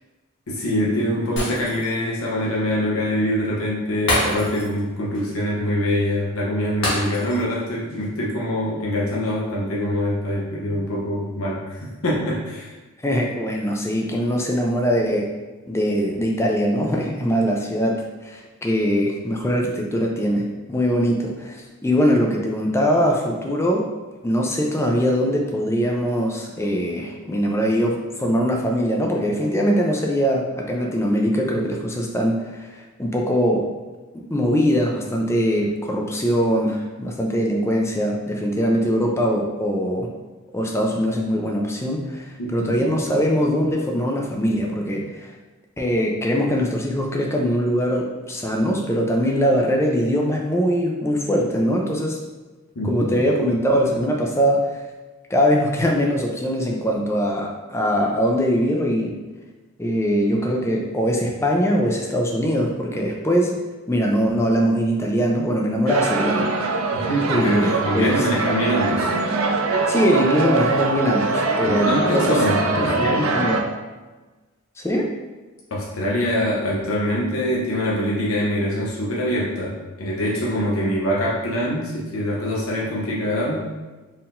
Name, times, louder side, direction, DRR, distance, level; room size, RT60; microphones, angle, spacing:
voice 1, 0.5-12.7 42.4-42.9 52.8-53.2 66.9-69.1 71.6-73.3 75.7-83.7, equal, 80° left, -5 dB, 0.8 m, -24 dB
Shatter, 1.4-2.1 2.4-2.5 4.1-4.8 5.1-5.3 6.8-7.5 7.9-8.0, left 1 dB, 60° left, 1.4 m, -26 dB
voice 2, 13.0-15.3 15.7-23.8 24.2-33.7 34.1-40.1 40.5-45.3 45.8-52.2 52.8-54.6 55.3-59.1 59.8-63.6 63.9-66.5 67.3-68.4 69.9-72.4 72.8-73.6 74.8-75.1, equal, 10° left, 0 dB, 0.5 m, -22 dB
sound 1, 65.9-73.6, right 3 dB, 75° right, 0.4 m, -23 dB
4.5 x 3.6 x 2.5 m, 1.2 s
head